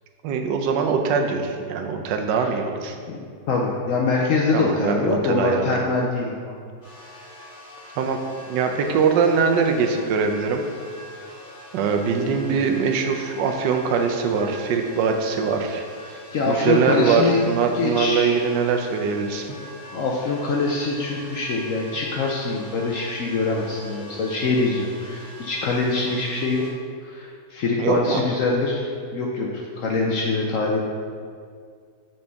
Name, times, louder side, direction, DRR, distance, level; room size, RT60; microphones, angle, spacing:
voice 1, 0.2-3.0 4.5-5.8 8.0-8.2 8.5-10.6 11.7-16.2 16.5-19.5 27.8-28.2, right 5 dB, 85° right, 4 dB, 1.3 m, -22 dB
voice 2, 3.1-6.6 12.0-12.6 16.3-17.4 17.7-18.4 19.9-26.6 27.0-30.8, left 3 dB, 70° left, -1 dB, 0.8 m, -24 dB
sound 1, 6.8-26.7, equal, 50° left, 1.7 m, -43 dB
6.3 x 4.3 x 3.4 m, 2.1 s
omnidirectional pair, 1.9 m